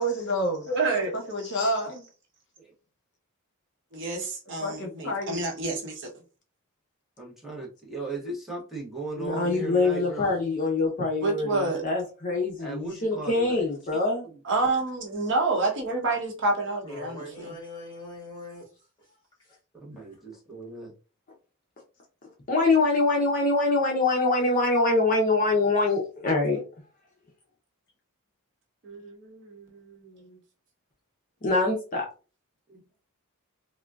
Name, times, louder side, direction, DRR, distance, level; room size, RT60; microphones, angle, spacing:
voice 1, 0.0-0.7 1.1-2.0 4.6-5.4, equal, 55° left, 0.9 m, -29 dB
voice 2, 0.7-1.1 3.9-6.1 11.2-11.8 14.4-17.5 28.8-30.4, right 3 dB, 55° right, 0.9 m, -28 dB
voice 3, 7.2-10.3 12.6-13.6 19.8-20.9 32.7-32.8, right 3 dB, ahead, 0.8 m, -37 dB
voice 4, 9.2-14.3 22.2-26.6 31.4-32.1, left 3 dB, 40° left, 0.6 m, -24 dB
voice 5, 16.8-18.6 19.0-19.1 19.4-19.6, left 2 dB, 20° left, 1.4 m, -42 dB
3.6 x 2.2 x 2.3 m
head